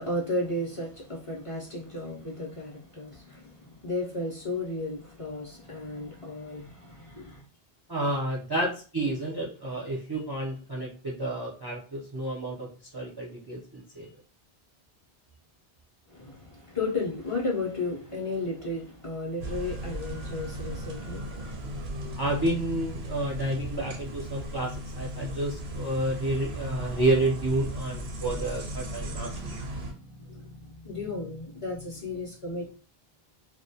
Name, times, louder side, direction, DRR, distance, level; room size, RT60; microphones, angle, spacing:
voice 1, 0.0-7.4 16.1-22.2 25.3-25.6 26.0-26.2 28.1-32.8, left 2 dB, 40° left, 0.5 m, -35 dB
voice 2, 7.9-12.7 12.9-14.1 22.2-29.6, right 1 dB, 35° right, 0.4 m, -30 dB
sound 1, 19.4-29.9, right 1 dB, 85° right, 0.8 m, -36 dB
2.2 x 2.1 x 2.6 m
omnidirectional pair, 1.0 m